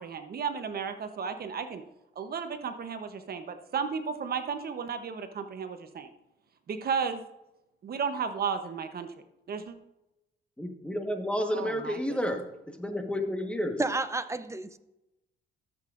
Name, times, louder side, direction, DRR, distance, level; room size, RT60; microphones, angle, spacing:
voice 1, 0.0-1.8 2.2-6.1 6.7-7.2 7.8-9.1 9.5-9.7 11.5-12.2, right 6 dB, 50° right, 8 dB, 0.9 m, -33 dB
voice 2, 10.6-13.8, equal, 5° left, 5 dB, 1.3 m, -31 dB
voice 3, 13.8-14.8, right 3 dB, 15° right, 12 dB, 0.6 m, -31 dB
14.0 x 7.6 x 2.5 m, 0.92 s
cardioid pair, 90°, 20 cm